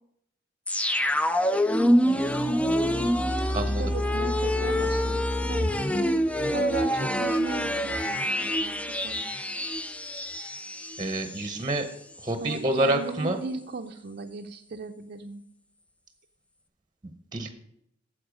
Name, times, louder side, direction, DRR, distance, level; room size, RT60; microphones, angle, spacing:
sound 1, 0.7-11.5 11.8-11.9, equal, 5° left, 0.4 m, -26 dB
voice 1, 3.8-5.2 5.5-5.7 6.5-9.4 12.4-15.4, right 3 dB, 50° right, 3 dB, 0.5 m, -37 dB
voice 2, 11.0-11.9 12.2-13.4 17.3-17.5, right 1 dB, 25° right, 8 dB, 0.8 m, -27 dB
9.5 x 7.3 x 5.1 m, 0.76 s
head